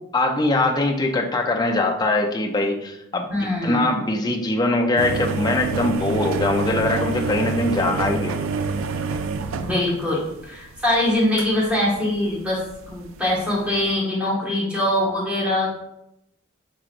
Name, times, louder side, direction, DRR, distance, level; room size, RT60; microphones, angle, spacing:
voice 1, 0.1-3.3 3.6-8.3, left 2 dB, 20° left, 1 dB, 0.5 m, -22 dB
voice 2, 3.3-3.9 9.6-15.7, left 1 dB, 5° right, -6 dB, 1.3 m, -23 dB
sound 1, 5.0-10.8 11.4-12.9 13.2-13.4 13.7-13.9, right 4 dB, 85° right, 0.4 m, -27 dB
6.0 x 3.0 x 2.5 m, 0.83 s
head